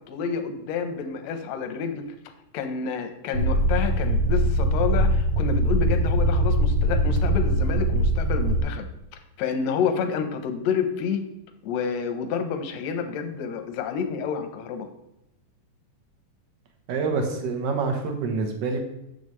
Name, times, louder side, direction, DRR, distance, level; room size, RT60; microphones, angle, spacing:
voice 1, 0.0-2.0 2.5-11.2 11.6-14.9, left 6 dB, 70° left, 6 dB, 1.6 m, -29 dB
sound 1, 3.3-8.6, right 1 dB, 85° right, 1.0 m, -22 dB
voice 2, 16.9-18.8, right 4 dB, 65° right, 3 dB, 1.6 m, -26 dB
9.2 x 6.9 x 3.2 m, 0.86 s
omnidirectional pair, 3.9 m